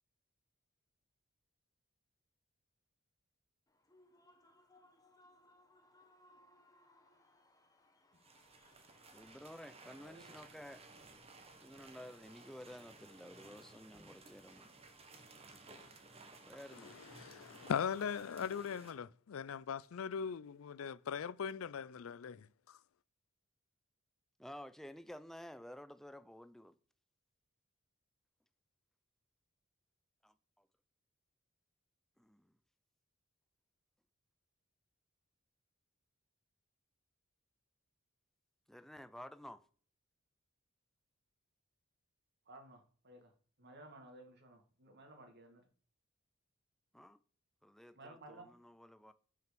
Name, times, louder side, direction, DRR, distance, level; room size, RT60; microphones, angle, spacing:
Human voice / Cheering / Applause, 3.7-11.3, left 1 dB, 15° left, 1.3 m, -68 dB
sound 1, 8.1-18.9, right 3 dB, 30° right, 1.4 m, -58 dB
voice 1, 9.1-10.8 11.6-14.7 16.4-17.0 24.4-26.8 30.2-30.7 32.2-32.5 38.7-39.6 46.9-47.2 47.6-49.1, left 1 dB, ahead, 0.4 m, -52 dB
voice 2, 16.7-22.8, left 7 dB, 75° left, 0.4 m, -40 dB
voice 3, 42.5-43.3 43.6-45.7 47.9-48.5, right 2 dB, 55° right, 2.0 m, -56 dB
6.2 x 5.8 x 6.8 m
head